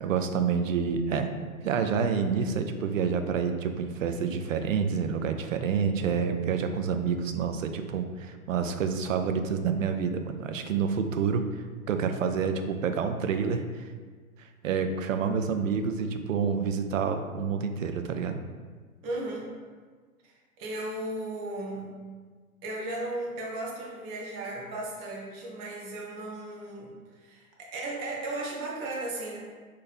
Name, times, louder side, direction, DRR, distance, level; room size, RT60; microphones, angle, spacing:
voice 1, 0.0-1.3 1.6-13.9 14.4-18.4, right 6 dB, 65° right, 7 dB, 0.5 m, -28 dB
voice 2, 19.0-19.5 20.2-22.0 22.6-27.5 27.7-29.4, right 2 dB, 20° right, -2 dB, 0.5 m, -36 dB
3.2 x 2.7 x 4.1 m, 1.5 s
figure-of-eight pair, 115°, 43 cm